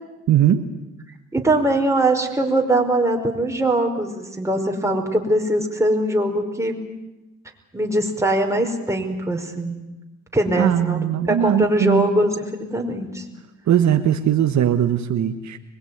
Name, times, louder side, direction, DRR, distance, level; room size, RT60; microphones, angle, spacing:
voice 1, 0.3-0.6 10.6-12.1 13.7-15.6, right 10 dB, 65° right, 7 dB, 1.5 m, -19 dB
voice 2, 1.3-6.8 7.7-9.8 10.3-13.2, right 1 dB, 10° right, 2 dB, 5.0 m, -21 dB
24.5 x 21.5 x 9.6 m, 1.0 s
cardioid pair, 90°, 30 cm